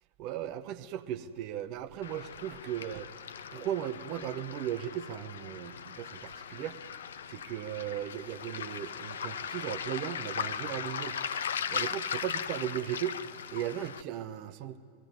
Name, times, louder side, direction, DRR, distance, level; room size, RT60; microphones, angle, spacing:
voice 1, 0.2-3.1 3.5-6.8 7.3-11.2 11.7-13.2 13.5-14.8, right 11 dB, 45° right, 11 dB, 0.9 m, -37 dB
Waves surf, 2.0-14.0, left 7 dB, 65° left, 0.6 m, -38 dB
19.5 x 15.0 x 9.7 m, 2.2 s
figure-of-eight pair, 90°, 0 cm